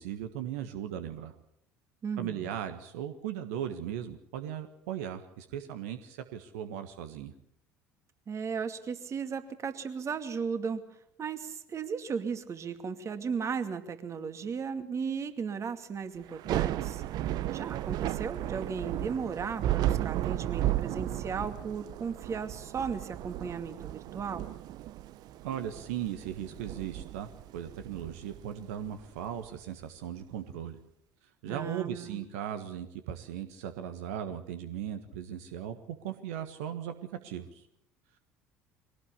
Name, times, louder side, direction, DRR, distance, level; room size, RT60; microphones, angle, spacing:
voice 1, 0.0-1.3 2.2-7.3 25.4-30.8 31.2-36.9 37.2-37.7, right 10 dB, 70° right, 8 dB, 1.5 m, -38 dB
voice 2, 2.0-2.5 8.3-10.8 11.2-17.0 17.5-24.5 31.5-32.2, right 6 dB, 35° right, 9 dB, 2.4 m, -36 dB
Thunder / Rain, 16.3-29.5, right 13 dB, 55° right, 0.8 m, -34 dB
23.0 x 18.0 x 8.4 m, 0.73 s
figure-of-eight pair, 60°, 8 cm